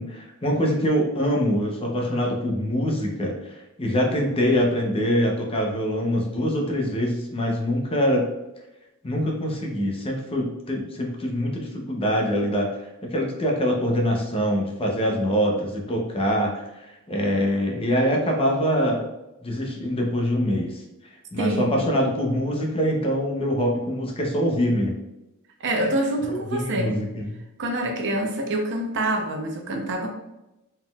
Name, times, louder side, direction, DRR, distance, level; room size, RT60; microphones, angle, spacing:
voice 1, 0.0-8.2 9.0-19.1 19.4-20.8 21.3-24.9 25.7-25.9 26.3-27.3, equal, 25° left, 0 dB, 0.7 m, -24 dB
voice 2, 21.4-21.8 25.6-26.9 27.6-30.1, right 1 dB, 55° right, 2 dB, 0.7 m, -26 dB
4.2 x 3.9 x 2.3 m, 0.94 s
head